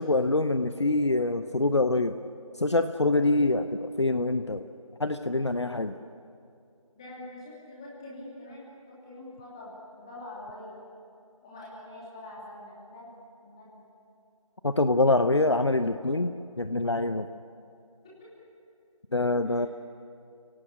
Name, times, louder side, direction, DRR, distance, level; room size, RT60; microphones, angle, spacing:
voice 1, 0.0-2.1 2.6-4.6 5.0-5.9 14.6-17.3 19.1-19.7, left 2 dB, 50° left, 10 dB, 0.8 m, -25 dB
voice 2, 3.1-3.7 6.9-10.8 11.4-13.1 13.4-13.8 18.0-18.3 19.4-19.7, left 1 dB, 10° left, -6 dB, 2.8 m, -45 dB
29.5 x 18.0 x 8.7 m, 2.5 s
figure-of-eight pair, 170°, 18 cm